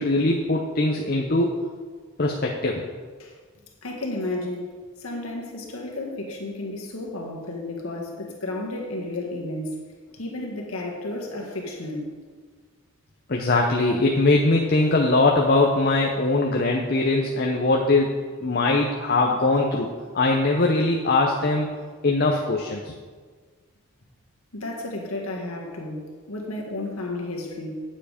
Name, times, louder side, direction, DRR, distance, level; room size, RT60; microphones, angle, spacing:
voice 1, 0.0-1.5 2.2-2.8 13.3-18.1 18.4-19.9 20.1-21.7 22.0-22.9, left 2 dB, 45° left, 0 dB, 0.7 m, -21 dB
voice 2, 3.8-4.7 5.0-9.8 10.1-12.1 24.5-27.7, left 2 dB, 80° left, -1 dB, 1.8 m, -32 dB
9.5 x 7.3 x 5.1 m, 1.5 s
head